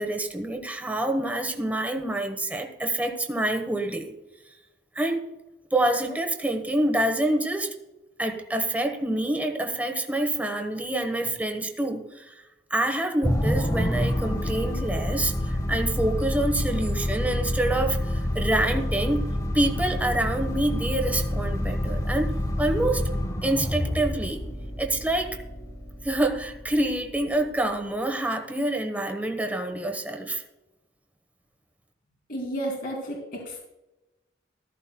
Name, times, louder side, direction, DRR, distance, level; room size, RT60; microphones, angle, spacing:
voice 1, 0.0-4.1 4.9-5.3 5.7-7.7 8.2-12.3 12.7-19.2 19.5-22.3 22.6-23.0 23.4-24.4 24.8-25.4 26.0-30.4, right 1 dB, 10° right, 4 dB, 1.2 m, -27 dB
sound 1, 13.2-27.7, left 1 dB, 20° left, 1.0 m, -28 dB
voice 2, 32.3-33.6, right 1 dB, 55° left, -1 dB, 3.1 m, -32 dB
14.0 x 13.5 x 2.3 m, 1.0 s
head